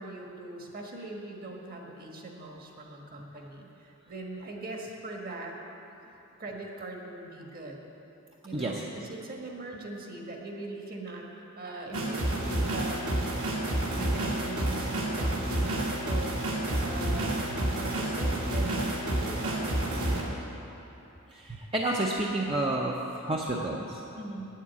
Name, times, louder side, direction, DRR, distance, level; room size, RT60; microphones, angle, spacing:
voice 1, 0.0-5.5 6.4-7.8 8.4-11.3 11.6-13.2 13.9-20.3 24.2-24.5, right 2 dB, 45° right, 0 dB, 1.5 m, -41 dB
voice 2, 8.5-8.8 17.1-17.2 21.3-24.0, right 1 dB, 25° right, -2 dB, 0.7 m, -30 dB
sound 1, 11.9-20.2, right 1 dB, 80° right, 2.1 m, -29 dB
9.5 x 7.4 x 8.2 m, 2.9 s
head